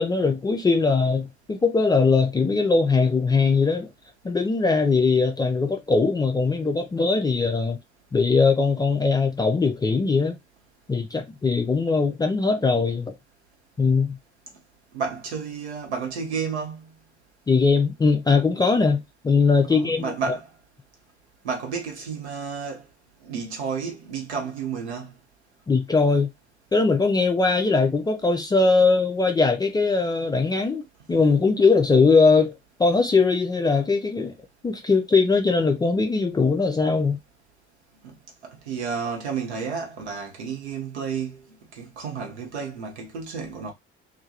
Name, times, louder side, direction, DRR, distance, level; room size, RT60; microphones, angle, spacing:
voice 1, 0.0-3.9 4.2-7.8 8.1-10.4 10.9-13.1 13.8-14.2 17.5-20.1 25.7-26.3 26.7-32.5 32.8-34.3 34.6-37.2, left 4 dB, 10° left, 0.3 m, -20 dB
voice 2, 14.9-16.9 19.7-20.5 21.4-22.8 23.2-25.1 38.0-38.1 38.4-41.4 41.7-43.7, right 5 dB, 75° right, 0.8 m, -31 dB
2.2 x 2.1 x 2.7 m
figure-of-eight pair, 50°, 34 cm